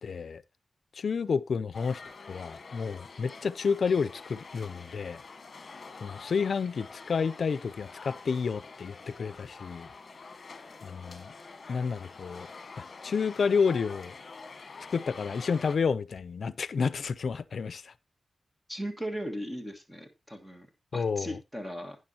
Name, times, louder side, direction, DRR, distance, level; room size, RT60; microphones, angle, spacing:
voice 1, 0.0-0.4 0.9-2.0 2.3-5.2 6.0-9.9 10.8-11.3 11.7-12.5 12.8-14.1 14.9-17.9 20.9-21.4, left 5 dB, 70° left, 0.5 m, -30 dB
sound 1, 1.7-15.8, left 4 dB, 50° left, 1.4 m, -47 dB
voice 2, 18.7-20.7 20.9-22.0, equal, 10° right, 1.5 m, -37 dB
11.5 x 9.4 x 2.8 m
wide cardioid pair, 165°, 0 cm